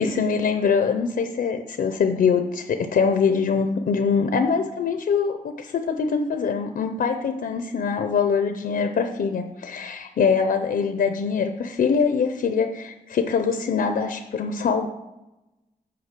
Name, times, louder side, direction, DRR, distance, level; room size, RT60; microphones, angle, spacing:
voice 1, 0.0-14.9, left 5 dB, 85° left, 7 dB, 0.6 m, -23 dB
8.5 x 5.2 x 6.0 m, 0.98 s
wide cardioid pair, 175°, 15 cm